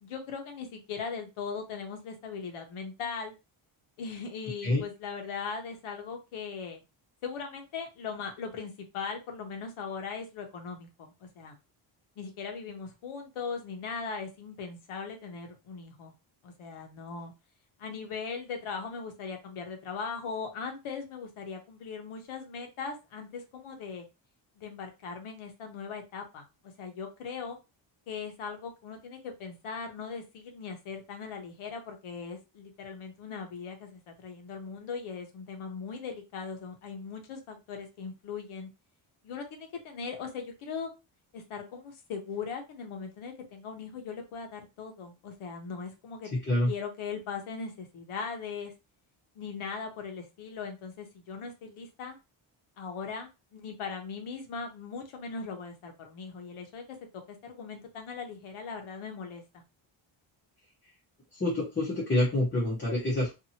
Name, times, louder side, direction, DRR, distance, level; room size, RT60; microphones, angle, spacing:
voice 1, 0.0-3.4 4.0-6.8 7.2-11.6 12.2-16.1 16.4-17.3 17.8-24.1 24.6-27.6 28.1-38.7 39.2-40.9 41.3-46.3 46.7-48.7 49.3-52.2 52.8-56.8 57.1-59.6, left 5 dB, 75° left, 4 dB, 1.0 m, -39 dB
voice 2, 46.3-46.7 61.3-63.3, left 1 dB, 20° left, -6 dB, 0.9 m, -27 dB
2.8 x 2.6 x 2.7 m, 0.27 s
wide cardioid pair, 175°, 50 cm